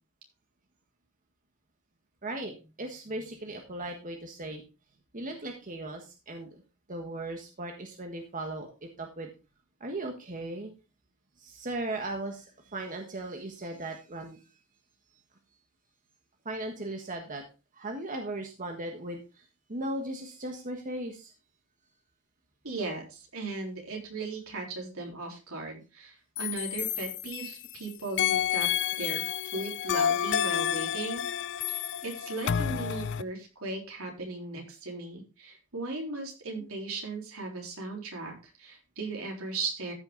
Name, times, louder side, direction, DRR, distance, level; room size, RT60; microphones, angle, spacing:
voice 1, 2.2-4.6 5.1-6.6 6.9-9.3 9.8-10.7 11.4-14.4 16.4-17.4 17.7-21.3, right 1 dB, 35° right, 3 dB, 1.5 m, -37 dB
voice 2, 22.6-28.7 29.0-29.3 29.5-31.2 31.7-39.9, right 3 dB, 75° right, 1 dB, 3.7 m, -37 dB
sound 1, 26.4-27.7 28.2-33.2, left 9 dB, 55° left, 0.4 m, -30 dB
14.0 x 6.1 x 3.8 m, 0.30 s
head